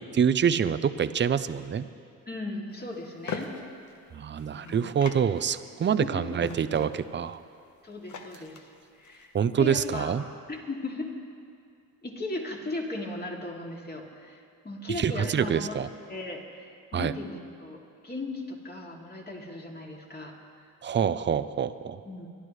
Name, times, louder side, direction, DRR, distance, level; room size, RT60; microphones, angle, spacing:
voice 1, 0.1-1.8 4.1-7.4 9.3-10.2 15.0-15.9 16.9-17.1 20.8-22.0, right 7 dB, 35° right, 13 dB, 0.6 m, -26 dB
voice 2, 2.3-3.5 4.5-4.8 6.0-6.2 7.8-8.6 9.0-10.1 10.5-11.1 12.0-14.4 14.6-15.8 16.1-17.8 18.0-20.6 22.0-22.3, left 2 dB, 30° left, -1 dB, 2.6 m, -37 dB
sound 1, 2.7-9.5, left 5 dB, 60° left, 1.2 m, -43 dB
25.0 x 11.0 x 3.2 m, 2.4 s
cardioid pair, 75°, 33 cm